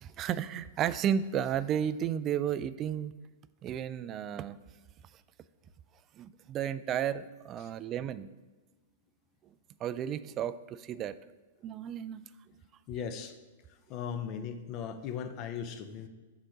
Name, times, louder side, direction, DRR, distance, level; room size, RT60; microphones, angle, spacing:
voice 1, 0.0-3.1 3.6-4.6 6.2-8.3 9.8-11.2 11.6-12.2, right 9 dB, 30° right, 15 dB, 0.3 m, -33 dB
voice 2, 12.9-13.3 13.9-16.1, left 7 dB, 35° left, 8 dB, 0.7 m, -38 dB
7.5 x 4.0 x 5.0 m, 1.3 s
figure-of-eight pair, 100°, 0 cm